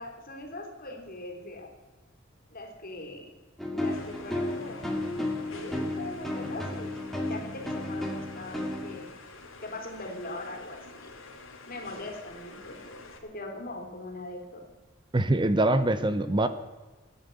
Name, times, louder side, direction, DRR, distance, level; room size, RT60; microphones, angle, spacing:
voice 1, 0.0-1.7 2.5-3.3 3.7-4.9 5.4-9.1 9.6-11.1 11.7-14.6, left 2 dB, 45° left, 2 dB, 3.4 m, -41 dB
sound 1, 3.6-9.0, left 1 dB, ahead, 2.4 m, -33 dB
sound 2, 3.8-13.2, left 3 dB, 90° left, 2.6 m, -48 dB
voice 2, 15.1-16.5, right 1 dB, 25° right, 11 dB, 0.7 m, -24 dB
17.0 x 10.0 x 8.4 m, 1.2 s
head